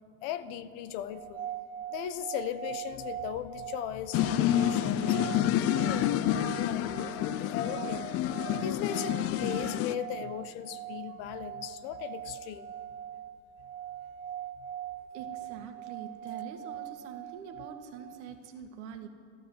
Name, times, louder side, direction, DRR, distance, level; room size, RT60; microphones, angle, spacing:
voice 1, 0.2-1.5 1.9-12.7 14.6-14.7, left 11 dB, 55° left, 12 dB, 1.0 m, -38 dB
sound 1, 1.1-18.2, right 11 dB, 25° right, 0.4 m, -42 dB
sound 2, 4.1-9.9, left 12 dB, 40° left, 0.7 m, -29 dB
voice 2, 15.1-19.1, right 7 dB, 65° right, 5 dB, 2.0 m, -44 dB
13.0 x 12.5 x 8.2 m, 2.2 s
hypercardioid pair, 105°, 36 cm